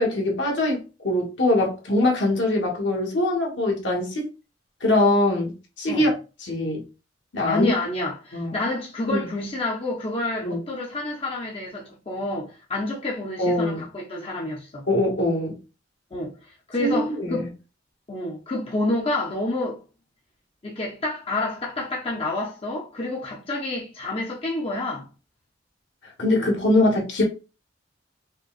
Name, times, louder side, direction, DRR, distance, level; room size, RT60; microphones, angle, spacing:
voice 1, 0.0-4.2 4.8-6.1 6.4-6.8 7.3-7.7 8.3-8.6 9.1-9.2 10.4-10.6 13.4-13.8 14.9-15.6 16.8-17.5 26.2-27.2, left 1 dB, 70° left, 1.4 m, -22 dB
voice 2, 7.4-14.9 16.1-16.4 16.7-17.5 18.1-19.8 20.6-25.1, left 2 dB, 30° left, 0.7 m, -28 dB
5.1 x 2.3 x 2.4 m
head